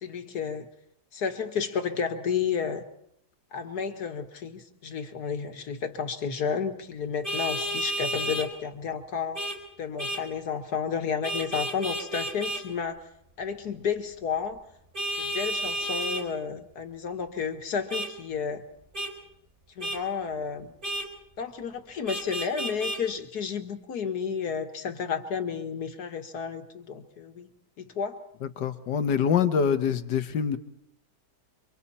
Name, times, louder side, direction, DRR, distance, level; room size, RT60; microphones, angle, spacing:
voice 1, 0.0-0.7 1.1-2.8 3.5-9.4 9.8-13.1 13.4-14.6 15.2-18.6 19.8-20.7 21.4-27.5 27.8-28.2, left 6 dB, 65° left, 7 dB, 2.1 m, -31 dB
Vehicle horn car horn honking, 7.2-8.5 9.3-9.6 10.0-10.2 11.2-12.6 14.9-16.2 17.9-18.1 18.9-19.1 19.8-20.0 20.8-21.1 22.1-23.0, right 1 dB, 30° right, 3.8 m, -31 dB
voice 2, 28.6-30.6, left 7 dB, 85° left, 9 dB, 1.8 m, -25 dB
29.0 x 24.5 x 4.3 m, 0.75 s
omnidirectional pair, 1.8 m